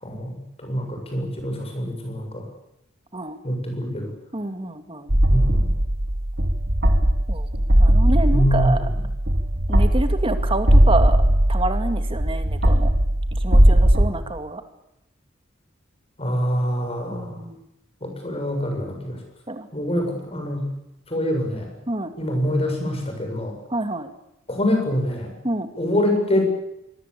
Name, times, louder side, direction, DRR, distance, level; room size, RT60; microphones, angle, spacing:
voice 1, 0.0-2.5 3.4-4.1 5.3-5.7 8.3-9.0 16.2-17.4 18.0-19.2 19.7-20.7 21.1-21.8 22.2-23.6 24.5-25.3 25.8-26.4, equal, 30° left, 3 dB, 7.7 m, -25 dB
voice 2, 4.3-5.1 7.3-7.5 7.8-8.9 9.7-11.2 11.5-12.9 13.4-14.6 17.1-17.7 19.5-19.7 21.9-22.1 23.7-24.1 25.4-25.7, right 2 dB, 25° right, 8 dB, 2.4 m, -27 dB
sound 1, 5.1-14.1, right 1 dB, 55° right, 3.0 m, -18 dB
25.5 x 23.0 x 8.5 m, 0.84 s
head